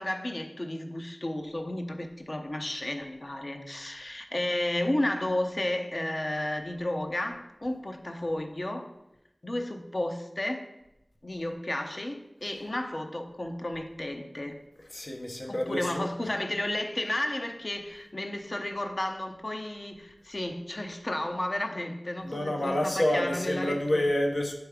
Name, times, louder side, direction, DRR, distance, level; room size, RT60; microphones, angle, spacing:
voice 1, 0.0-8.9 9.4-10.7 11.2-14.6 15.5-24.0, left 1 dB, 50° left, 5 dB, 0.8 m, -32 dB
voice 2, 14.9-16.0 22.2-24.5, left 1 dB, 75° left, 1 dB, 1.0 m, -28 dB
8.1 x 3.2 x 4.9 m, 0.90 s
wide cardioid pair, 45°, 0 cm